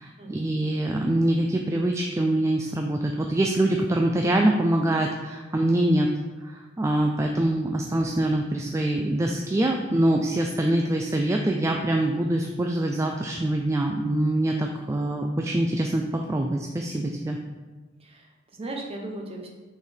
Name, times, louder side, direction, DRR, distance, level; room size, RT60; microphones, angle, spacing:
voice 1, 0.0-6.1 6.4-17.4, right 1 dB, 15° right, 2 dB, 0.3 m, -24 dB
voice 2, 18.0-19.5, right 2 dB, 30° right, 0 dB, 0.9 m, -37 dB
5.8 x 4.0 x 4.3 m, 1.3 s
head